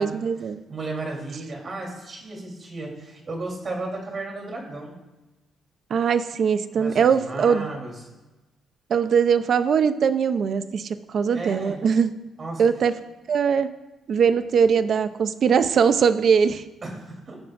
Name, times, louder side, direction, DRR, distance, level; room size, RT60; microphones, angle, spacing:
voice 1, 0.0-0.6 5.9-7.7 8.9-12.1 12.6-12.9 13.3-13.7 14.1-16.6, right 6 dB, 55° right, 11 dB, 0.7 m, -21 dB
voice 2, 0.7-4.9 6.7-7.9 11.3-11.8 12.4-12.6 16.8-17.4, right 2 dB, 40° right, 0 dB, 3.5 m, -34 dB
19.0 x 7.5 x 2.6 m, 1.1 s
cardioid pair, 90°, 0 cm